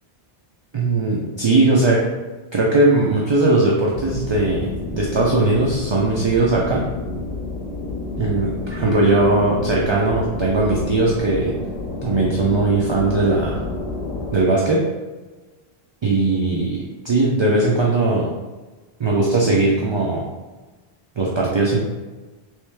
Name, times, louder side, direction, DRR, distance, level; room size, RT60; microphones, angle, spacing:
voice 1, 0.7-2.0 2.5-6.9 8.2-11.6 12.0-13.6 14.3-14.9 16.0-18.3 19.0-20.2 21.2-21.8, right 2 dB, 45° right, -4 dB, 0.4 m, -19 dB
sound 1, 3.9-14.4, left 3 dB, 85° left, 0.9 m, -30 dB
3.2 x 3.1 x 3.3 m, 1.2 s
omnidirectional pair, 1.0 m